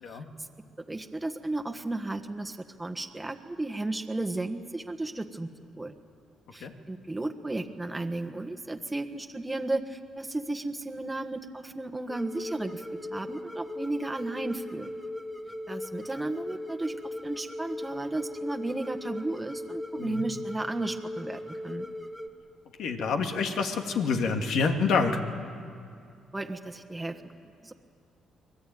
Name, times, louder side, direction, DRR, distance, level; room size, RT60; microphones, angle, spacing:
voice 1, 0.1-0.5 0.9-5.5 5.8-5.9 6.5-12.8 13.1-14.9 15.7-21.8 26.3-27.2 27.6-27.7, right 2 dB, 10° right, 4 dB, 1.4 m, -34 dB
sound 1, 12.1-22.3, left 1 dB, 10° left, 1.8 m, -38 dB
voice 2, 22.8-25.2, left 4 dB, 75° left, 4 dB, 2.3 m, -27 dB
24.5 x 21.0 x 9.4 m, 2.4 s
cardioid pair, 90°, 0 cm